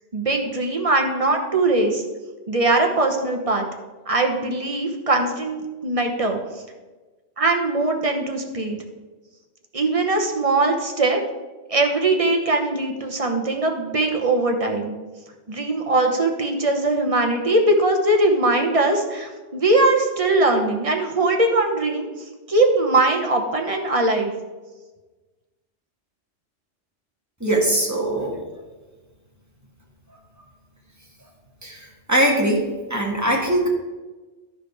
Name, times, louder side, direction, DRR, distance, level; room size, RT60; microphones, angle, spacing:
voice 1, 0.1-2.0 2.5-3.7 4.1-6.4 7.4-8.8 9.7-11.2 11.7-14.9 15.5-22.1 22.5-24.3, right 2 dB, 30° right, 3 dB, 1.0 m, -21 dB
voice 2, 27.4-28.3 31.6-32.6 32.9-33.7, right 1 dB, 15° right, -2 dB, 1.5 m, -21 dB
11.5 x 5.1 x 4.8 m, 1.3 s
omnidirectional pair, 1.2 m